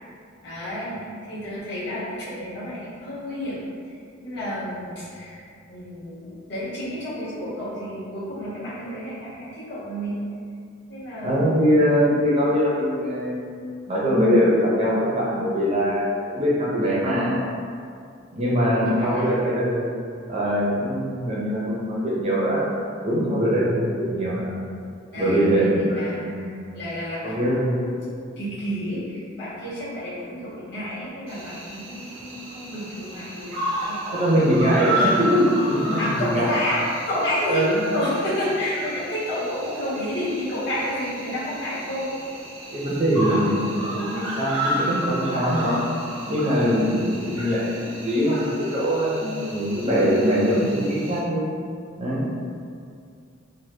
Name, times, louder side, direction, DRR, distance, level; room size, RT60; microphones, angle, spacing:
voice 1, 0.4-3.6 3.9-5.4 5.7-10.2 10.9-11.7 18.8-19.3 25.1-27.4 27.7-34.4 36.0-37.7 37.9-42.5 46.8-47.1, equal, 55° left, -10 dB, 1.1 m, -31 dB
voice 2, 11.2-13.6 13.9-17.4 18.3-19.9 20.3-22.7 23.0-24.6 25.2-26.5 27.2-27.8 34.1-36.5 37.5-37.9 42.7-45.8 46.3-51.5 52.0-52.2, equal, 30° right, -7 dB, 0.6 m, -22 dB
Cricket, 31.3-51.2, right 1 dB, 80° right, 0.7 m, -32 dB
3.1 x 2.1 x 3.2 m, 2.4 s
head